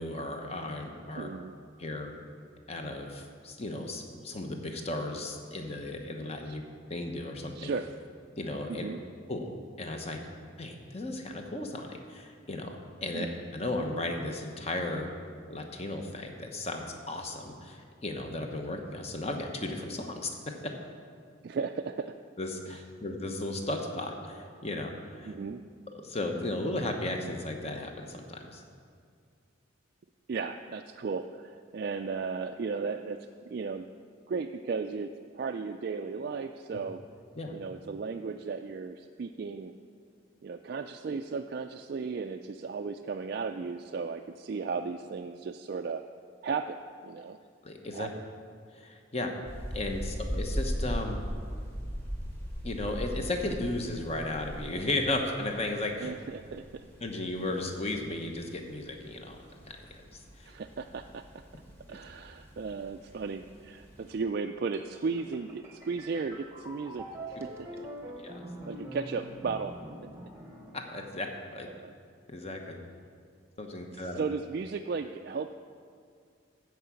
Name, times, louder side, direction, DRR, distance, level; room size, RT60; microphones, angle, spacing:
voice 1, 0.0-1.3 1.8-2.1 2.7-6.6 6.9-7.7 8.4-8.9 9.3-9.5 9.8-10.2 10.6-13.3 13.5-15.1 15.5-20.5 22.4-25.3 26.0-28.6 37.4-37.6 47.6-48.1 48.7-49.3 49.7-51.2 52.6-56.1 57.0-59.9 60.1-60.5 61.9-62.0 68.2-68.4 70.7-71.3 71.5-71.7 72.3-72.8 73.6-74.2, left 2 dB, 30° left, 3 dB, 0.9 m, -35 dB
voice 2, 1.1-1.6 6.5-6.6 7.6-7.9 8.7-9.0 13.1-13.3 21.4-22.2 25.3-25.6 30.3-33.9 34.3-37.0 37.5-39.7 40.4-46.0 46.4-47.4 47.9-48.3 56.0-56.8 60.5-61.2 61.9-67.9 68.6-69.7 71.7-71.9 74.0-75.5, right 5 dB, 50° right, 5 dB, 0.3 m, -35 dB
sound 1, 49.4-64.2, equal, 10° left, 1.5 m, -39 dB
sound 2, 64.7-71.4, right 1 dB, 15° right, 0.9 m, -45 dB
13.5 x 4.7 x 8.2 m, 2.2 s
head